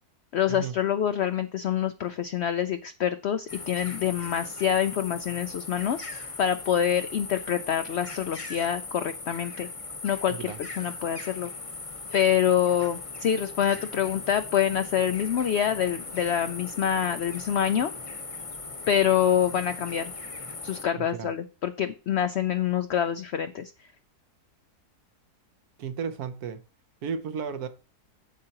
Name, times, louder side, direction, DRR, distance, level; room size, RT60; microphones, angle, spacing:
voice 1, 0.3-6.0 6.4-9.7 10.0-10.5 10.8-11.5 12.1-17.9 18.9-20.1 20.6-23.7, left 9 dB, 80° left, 0.6 m, -26 dB
sound 1, 3.5-20.8, left 3 dB, 25° left, 0.8 m, -39 dB
voice 2, 21.0-21.3 25.8-26.6 27.0-27.7, right 6 dB, 70° right, 1.3 m, -33 dB
8.3 x 7.6 x 2.9 m
omnidirectional pair, 1.7 m